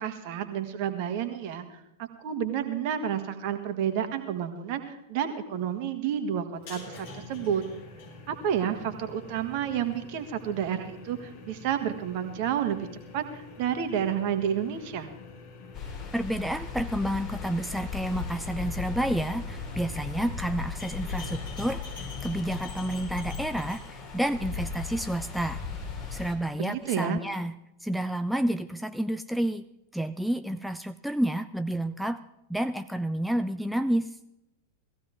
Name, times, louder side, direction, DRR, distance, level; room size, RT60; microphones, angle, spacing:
voice 1, 0.0-7.6 8.3-12.9 13.1-15.1 26.6-27.2, right 9 dB, 45° right, 7 dB, 1.7 m, -30 dB
sound 1, 6.5-25.9, left 3 dB, 50° left, 4.6 m, -46 dB
sound 2, 15.7-26.3, left 5 dB, 35° left, 4.2 m, -37 dB
voice 2, 16.1-25.6 26.1-27.5 27.8-29.6 29.9-32.2 32.5-34.1, right 1 dB, ahead, 9 dB, 0.4 m, -30 dB
18.0 x 15.0 x 3.6 m, 0.86 s
figure-of-eight pair, 90°, 0 cm